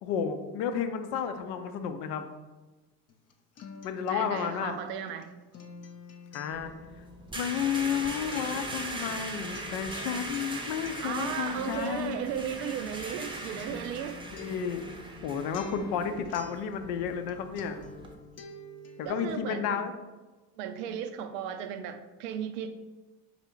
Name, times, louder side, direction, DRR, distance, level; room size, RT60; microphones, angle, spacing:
voice 1, 0.0-2.2 3.8-4.8 6.3-6.7 7.3-12.2 14.3-17.8 19.0-19.9, left 7 dB, 75° left, 8 dB, 0.6 m, -32 dB
Acoustic guitar, 3.1-17.3 17.6-19.1, left 3 dB, 35° left, 0.5 m, -48 dB
voice 2, 4.1-5.3 11.0-14.2 19.0-19.8 20.6-22.7, right 8 dB, 80° right, 9 dB, 0.6 m, -35 dB
sound 1, 6.5-18.1, right 2 dB, 10° right, 0.6 m, -40 dB
3.3 x 2.8 x 4.3 m, 1.2 s
hypercardioid pair, 60°, 47 cm